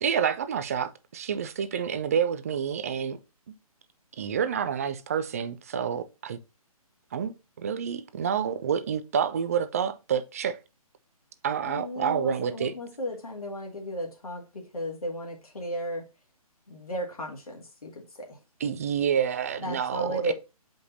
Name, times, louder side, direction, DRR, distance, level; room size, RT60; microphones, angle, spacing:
voice 1, 0.0-3.2 4.2-6.4 7.1-10.6 11.4-12.7 18.6-20.3, right 8 dB, 25° right, 0.4 m, -28 dB
voice 2, 11.6-16.0 16.7-18.4 19.6-20.3, left 1 dB, 70° left, 2.0 m, -35 dB
7.8 x 5.2 x 2.6 m
figure-of-eight pair, 140°, 19 cm